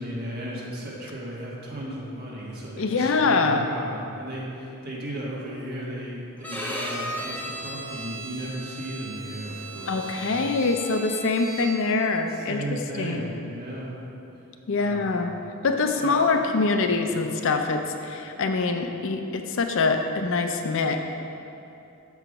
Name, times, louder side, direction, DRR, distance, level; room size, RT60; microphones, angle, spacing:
voice 1, 0.0-10.5 12.5-13.9 14.8-15.3 16.0-16.6, right 1 dB, 45° right, -5 dB, 1.4 m, -35 dB
voice 2, 2.8-3.7 9.9-13.3 14.7-15.3 15.6-21.0, left 4 dB, 60° left, 5 dB, 0.4 m, -24 dB
Bowed string instrument, 6.4-12.0, right 1 dB, 5° left, 0.6 m, -36 dB
6.8 x 4.8 x 4.9 m, 2.7 s
head